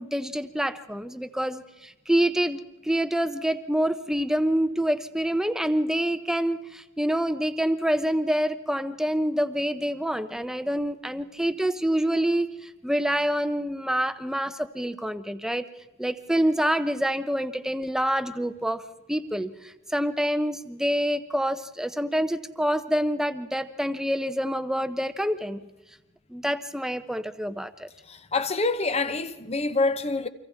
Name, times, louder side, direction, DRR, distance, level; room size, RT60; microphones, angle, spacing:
voice 1, 0.0-15.7 16.0-18.8 19.1-25.6 26.3-27.9, equal, 5° right, 0.8 m, -27 dB
voice 2, 28.1-30.3, left 3 dB, 30° left, 1.0 m, -26 dB
29.5 x 25.0 x 3.6 m
head